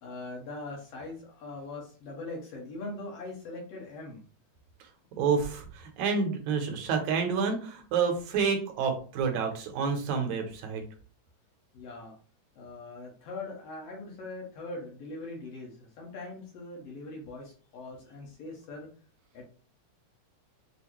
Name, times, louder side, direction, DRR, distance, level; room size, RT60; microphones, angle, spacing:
voice 1, 0.0-4.2 11.7-12.1 12.6-18.9 19.3-19.4, left 2 dB, 65° left, -1 dB, 1.8 m, -41 dB
voice 2, 5.2-10.8, right 5 dB, 75° right, 3 dB, 2.0 m, -29 dB
6.3 x 2.2 x 2.9 m, 0.40 s
omnidirectional pair, 3.6 m